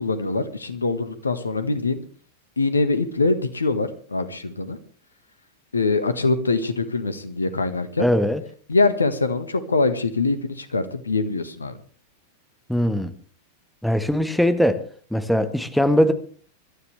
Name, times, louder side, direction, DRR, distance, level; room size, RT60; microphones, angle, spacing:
voice 1, 0.0-2.0 2.6-4.8 5.7-8.0 8.7-11.7, left 3 dB, 75° left, 12 dB, 1.6 m, -23 dB
voice 2, 8.0-8.4 12.7-13.1 13.8-14.8 15.1-16.1, equal, ahead, 10 dB, 1.5 m, -20 dB
25.0 x 13.0 x 3.4 m, 0.42 s
figure-of-eight pair, 90°, 0 cm